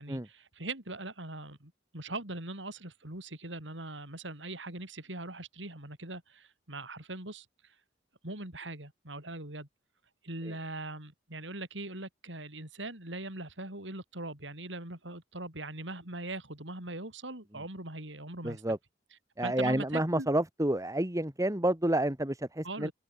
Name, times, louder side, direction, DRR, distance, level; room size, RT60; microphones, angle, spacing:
voice 1, 0.0-7.7 8.2-9.7 10.2-18.6 19.4-20.3 22.6-22.9, right 2 dB, 80° right, 6.5 m, -41 dB
voice 2, 18.4-18.8 19.4-22.9, right 1 dB, 20° right, 2.9 m, -29 dB
open air
head